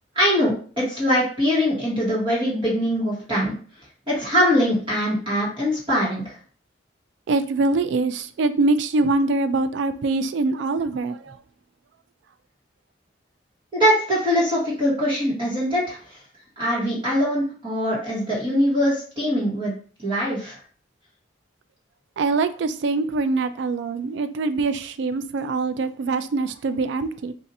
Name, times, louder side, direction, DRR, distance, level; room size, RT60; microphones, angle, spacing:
voice 1, 0.1-3.6 4.1-6.3 13.7-16.0 16.6-19.7 20.0-20.6, equal, 25° right, 1.2 m, -22 dB
voice 2, 7.3-11.4 22.2-27.3, right 3 dB, 65° right, 0.3 m, -23 dB
2.6 x 2.5 x 4.0 m
head